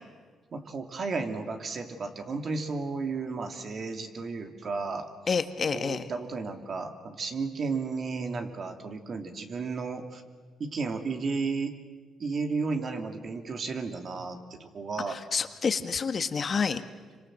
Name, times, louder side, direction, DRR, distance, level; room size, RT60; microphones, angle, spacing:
voice 1, 0.5-5.1 5.7-10.2 10.6-11.8 12.2-15.2, right 4 dB, 50° right, 6 dB, 2.8 m, -33 dB
voice 2, 5.3-6.1 15.1-16.8, left 5 dB, 45° left, 9 dB, 1.5 m, -28 dB
27.5 x 25.5 x 7.7 m, 1.5 s
cardioid pair, 90°, 0 cm